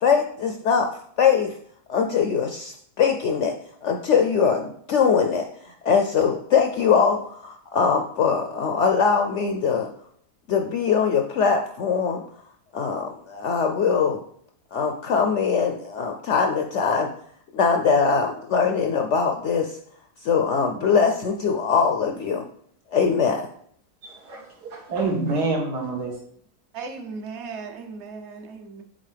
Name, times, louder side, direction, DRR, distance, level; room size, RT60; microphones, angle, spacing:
voice 1, 0.0-0.9 1.2-1.5 1.9-9.9 10.5-12.2 12.7-14.2 14.7-17.1 17.5-19.7 20.2-22.4 22.9-23.5, left 6 dB, 70° left, 0.7 m, -22 dB
voice 2, 24.0-26.1, right 3 dB, 90° right, 2.0 m, -27 dB
voice 3, 26.7-28.8, right 4 dB, 55° right, 0.9 m, -36 dB
8.1 x 3.7 x 3.3 m
omnidirectional pair, 1.7 m